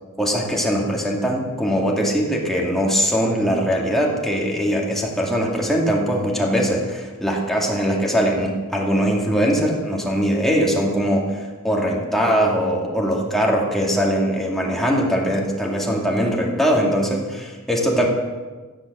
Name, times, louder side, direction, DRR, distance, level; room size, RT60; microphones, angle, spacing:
voice 1, 0.2-18.1, equal, ahead, -2 dB, 2.3 m, -21 dB
16.0 x 9.8 x 7.6 m, 1.3 s
head